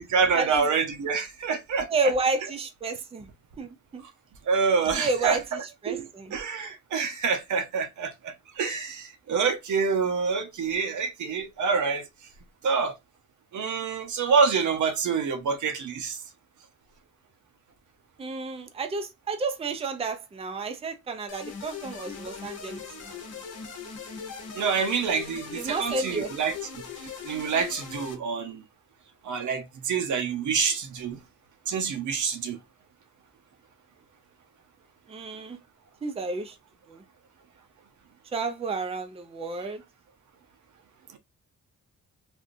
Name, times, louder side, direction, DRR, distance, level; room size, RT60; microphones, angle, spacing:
voice 1, 0.0-1.9 4.5-12.1 12.6-12.9 13.5-16.2 24.5-26.6 27.2-28.6 29.2-31.2 31.7-32.6, right 5 dB, 75° right, 0.7 m, -27 dB
voice 2, 1.9-3.3 3.6-4.0 4.9-6.3 18.2-22.8 23.1-23.2 25.5-26.3 35.1-35.6 36.0-36.5 36.9-37.0 38.3-39.8, right 3 dB, 20° right, 0.4 m, -31 dB
sound 1, 21.3-28.1, left 6 dB, 55° left, 0.9 m, -40 dB
3.4 x 2.5 x 2.6 m
wide cardioid pair, 165°, 30 cm